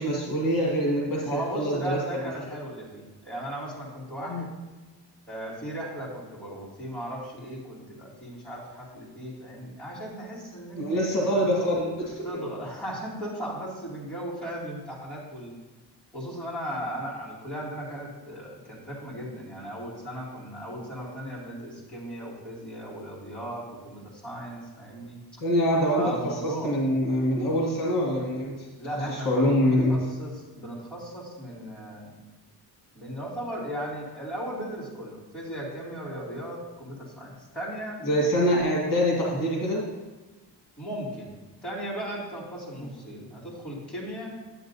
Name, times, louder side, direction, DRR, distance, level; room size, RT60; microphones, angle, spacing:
voice 1, 0.0-1.3 1.5-2.0 4.3-4.5 10.8-12.2 25.4-28.7 29.1-30.0 38.0-39.8, equal, 55° left, -3 dB, 1.7 m, -25 dB
voice 2, 1.2-4.5 5.3-11.2 12.2-15.5 16.1-25.2 25.9-26.7 28.8-32.2 32.9-38.0 40.8-41.4 41.6-44.3, right 1 dB, ahead, -10 dB, 2.5 m, -36 dB
10.0 x 8.1 x 2.7 m, 1.2 s
wide cardioid pair, 175°, 40 cm